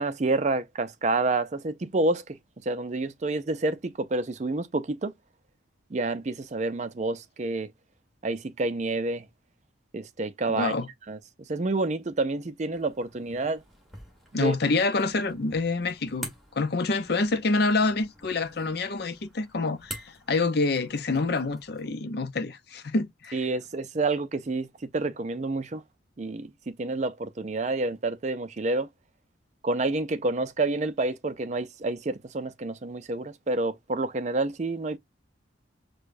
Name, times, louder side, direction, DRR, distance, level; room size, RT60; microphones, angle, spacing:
voice 1, 0.0-2.2 2.7-5.1 5.9-7.7 8.2-9.3 9.9-10.7 11.1-11.2 11.5-13.6 14.3-14.6 23.3-25.8 26.2-26.5 26.8-28.9 29.6-35.0, right 2 dB, 35° right, 0.4 m, -28 dB
voice 2, 10.5-10.9 14.3-23.5, left 3 dB, 55° left, 0.6 m, -27 dB
sound 1, 12.7-21.9, equal, ahead, 1.4 m, -47 dB
6.4 x 2.2 x 2.5 m
head